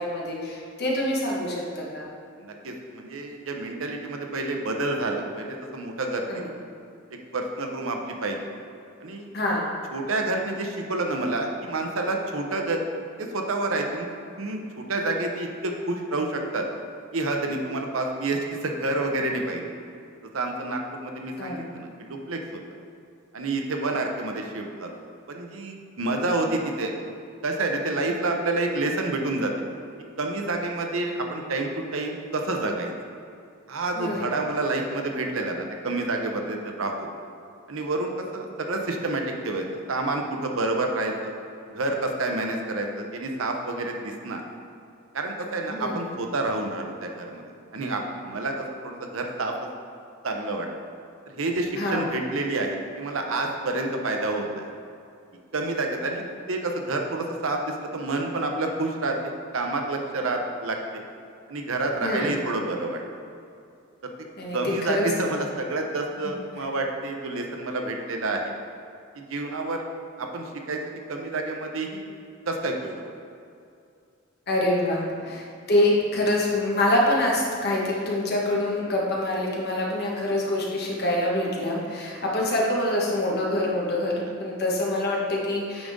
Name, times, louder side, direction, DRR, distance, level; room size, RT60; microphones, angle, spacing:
voice 1, 0.0-2.0 6.3-6.4 9.3-9.7 21.4-21.7 34.0-34.3 45.7-46.0 51.7-52.0 62.0-62.3 64.4-65.1 66.2-66.3 74.5-85.9, left 1 dB, 50° left, -3 dB, 1.4 m, -25 dB
voice 2, 2.4-6.5 7.3-8.4 9.0-9.3 9.9-12.8 13.2-14.1 14.4-16.6 17.1-19.7 20.3-22.6 23.3-24.9 25.3-26.9 27.4-29.5 30.2-32.9 33.7-37.1 37.7-41.3 41.7-44.4 45.1-47.4 47.7-49.5 50.2-50.7 51.3-54.7 55.5-61.0 61.5-63.0 64.5-68.5 69.1-69.8 70.2-70.8 71.1-72.1 72.5-73.1 84.1-84.2, right 2 dB, 75° right, 2 dB, 0.8 m, -28 dB
9.0 x 5.2 x 3.6 m, 2.5 s
head